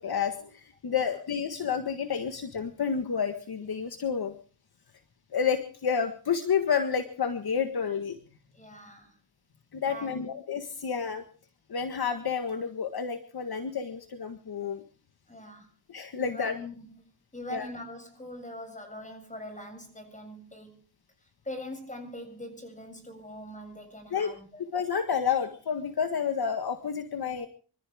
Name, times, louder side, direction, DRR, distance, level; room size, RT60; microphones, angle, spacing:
voice 1, 0.0-4.3 5.3-8.2 9.7-11.2 11.7-14.8 15.9-16.5 17.5-17.7 24.1-24.3 24.7-27.5, left 7 dB, 55° left, 7 dB, 1.7 m, -30 dB
voice 2, 8.5-9.2 9.8-10.2 15.3-15.7 16.2-16.9 17.3-20.8 21.2-24.6, left 1 dB, 15° left, 7 dB, 7.6 m, -42 dB
26.0 x 14.5 x 3.6 m, 0.41 s
cardioid pair, 75°, 44 cm